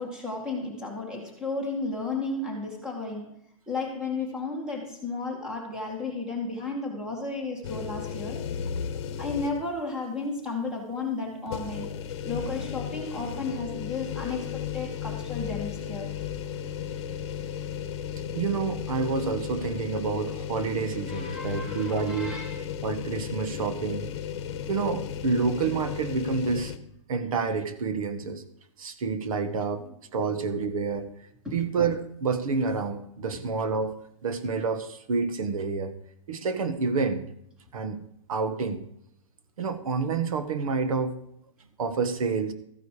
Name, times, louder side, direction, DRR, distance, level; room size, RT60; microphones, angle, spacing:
voice 1, 0.0-3.3 3.7-8.4 9.2-11.9 12.2-16.2 21.1-22.6 29.8-29.9 31.4-31.6, left 3 dB, 5° right, 0 dB, 2.1 m, -33 dB
sound 1, 7.6-9.8 10.2-10.3 11.5-26.8, left 8 dB, 50° left, 1.1 m, -35 dB
voice 2, 18.3-22.4 22.8-24.1 24.7-26.7 27.1-28.4 28.8-29.8 30.1-31.1 31.5-33.9 34.2-35.9 36.3-37.2 37.7-38.0 38.3-38.8 39.6-41.1 41.8-42.5, right 4 dB, 75° right, 10 dB, 1.5 m, -28 dB
14.5 x 9.7 x 5.0 m, 0.73 s
supercardioid pair, 175°, 18 cm